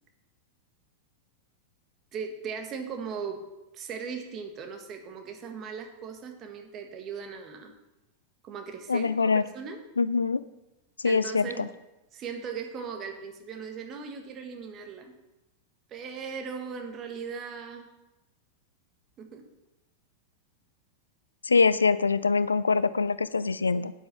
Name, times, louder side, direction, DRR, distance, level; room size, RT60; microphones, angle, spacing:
voice 1, 2.1-3.4 3.7-7.7 8.4-9.8 11.0-11.7 12.1-15.1 15.9-17.9 19.2-19.4, right 6 dB, 30° right, 4 dB, 1.6 m, -38 dB
voice 2, 8.9-9.4 10.0-10.4 11.0-11.7 21.4-23.9, left 4 dB, 75° left, 16 dB, 0.4 m, -24 dB
9.1 x 7.8 x 5.9 m, 1.0 s
figure-of-eight pair, 90°, 0 cm